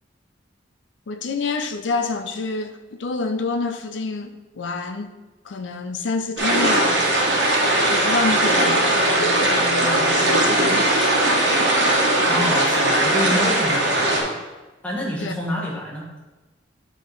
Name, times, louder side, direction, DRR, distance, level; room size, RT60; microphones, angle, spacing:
voice 1, 1.1-5.2 5.4-7.2 7.9-11.0 15.2-15.3, left 4 dB, 85° left, 7 dB, 0.5 m, -27 dB
sound 1, 6.4-14.2, right 1 dB, 80° right, 1.2 m, -19 dB
voice 2, 12.2-14.4 14.8-16.1, equal, 5° left, -4 dB, 1.1 m, -27 dB
8.4 x 3.0 x 3.8 m, 1.1 s
head